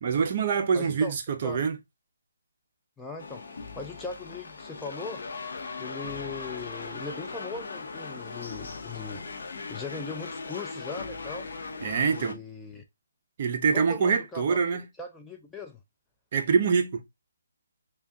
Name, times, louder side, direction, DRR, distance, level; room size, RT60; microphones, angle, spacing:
voice 1, 0.0-1.8 11.8-12.4 13.4-14.8 16.3-17.0, right 6 dB, 40° right, 0.6 m, -25 dB
voice 2, 0.7-1.1 1.4-1.6 3.0-3.4 3.8-5.2 5.8-9.2 9.7-11.5 12.0-12.8 13.7-14.6 15.0-15.8, left 4 dB, 5° left, 0.3 m, -39 dB
sound 1, 3.2-12.3, left 4 dB, 60° left, 0.7 m, -39 dB
3.4 x 2.2 x 3.5 m
hypercardioid pair, 160°, 0 cm